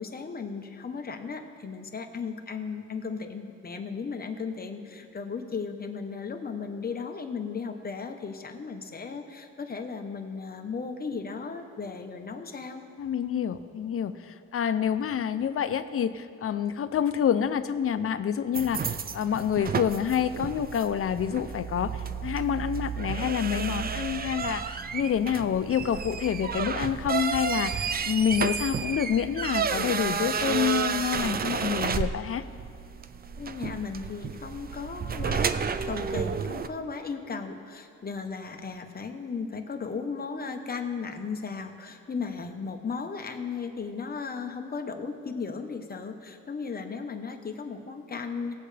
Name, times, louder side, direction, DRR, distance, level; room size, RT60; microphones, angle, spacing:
voice 1, 0.0-12.8 33.4-48.5, left 5 dB, 30° left, 5 dB, 1.0 m, -36 dB
voice 2, 13.0-32.4, left 8 dB, 50° left, 11 dB, 0.6 m, -28 dB
sound 1, 18.5-36.7, right 6 dB, 35° right, 0.4 m, -31 dB
19.5 x 7.7 x 3.3 m, 2.5 s
cardioid pair, 110°, 29 cm